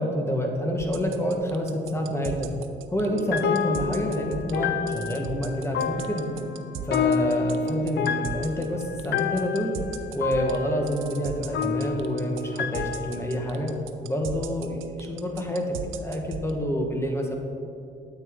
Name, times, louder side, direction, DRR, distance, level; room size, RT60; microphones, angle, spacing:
voice 1, 0.0-2.5 2.9-6.3 6.8-9.7 10.1-13.7 14.0-17.4, equal, 15° left, 2 dB, 1.3 m, -28 dB
sound 1, 0.8-16.5, right 9 dB, 85° right, 0.6 m, -37 dB
sound 2, 3.1-13.7, left 6 dB, 60° left, 0.5 m, -30 dB
9.2 x 8.0 x 3.7 m, 2.6 s
cardioid pair, 90°, 20 cm